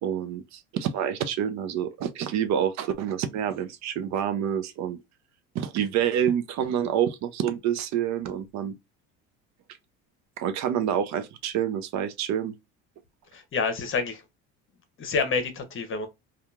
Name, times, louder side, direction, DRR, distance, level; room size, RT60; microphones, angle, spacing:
voice 1, 0.0-5.0 5.5-8.7 10.4-12.5, right 9 dB, 55° right, 0.5 m, -27 dB
voice 2, 13.3-14.2 15.0-16.1, left 4 dB, 35° left, 0.9 m, -28 dB
2.9 x 2.4 x 2.3 m
supercardioid pair, 105°, 34 cm